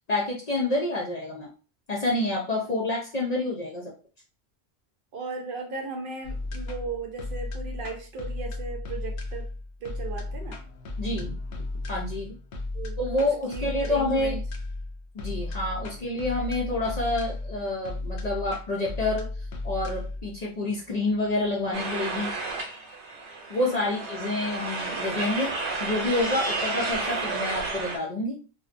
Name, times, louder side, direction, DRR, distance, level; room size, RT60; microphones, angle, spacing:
voice 1, 0.1-1.5 1.9-3.9 11.0-11.3 11.9-12.3 13.0-14.4 15.1-19.3 19.6-22.3 23.5-25.5 25.8-28.4, left 2 dB, 50° left, -3 dB, 0.5 m, -28 dB
voice 2, 5.1-9.5 9.8-10.6 12.7-14.4 23.6-24.0, right 4 dB, 60° right, 1 dB, 0.6 m, -37 dB
sound 1, 6.2-23.4, left 2 dB, 90° left, 0.9 m, -35 dB
sound 2, 21.7-28.0, right 3 dB, 85° right, 0.9 m, -31 dB
2.6 x 2.1 x 2.4 m, 0.36 s
omnidirectional pair, 1.1 m